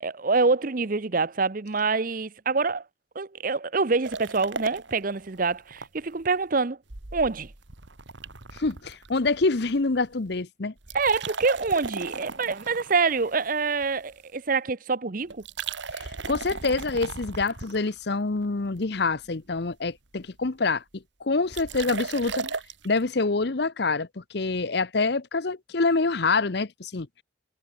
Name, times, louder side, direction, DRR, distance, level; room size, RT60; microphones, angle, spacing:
voice 1, 0.0-2.8 3.1-6.8 7.1-7.5 10.9-15.4, right 4 dB, 45° right, 0.7 m, -26 dB
sound 1, 4.0-5.9 6.2-6.3 6.9-9.8 10.0-10.3 10.8-14.1 15.3-18.3 18.8-19.3 19.6-19.7 19.9-20.0 20.1-20.4 21.5-22.9, right 4 dB, 65° right, 1.9 m, -37 dB
voice 2, 8.5-10.7 16.0-22.5 22.8-27.1, left 3 dB, 55° left, 0.8 m, -26 dB
head